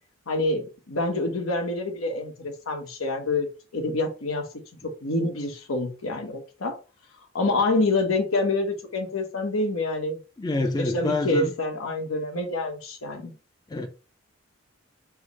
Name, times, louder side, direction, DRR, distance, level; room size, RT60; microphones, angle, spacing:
voice 1, 0.3-4.5 4.8-6.8 7.3-10.2 10.5-13.3, left 2 dB, 90° left, 1.1 m, -27 dB
voice 2, 10.4-11.5 13.1-13.2 13.7-13.9, left 2 dB, 20° left, 0.4 m, -26 dB
4.7 x 2.0 x 4.6 m
head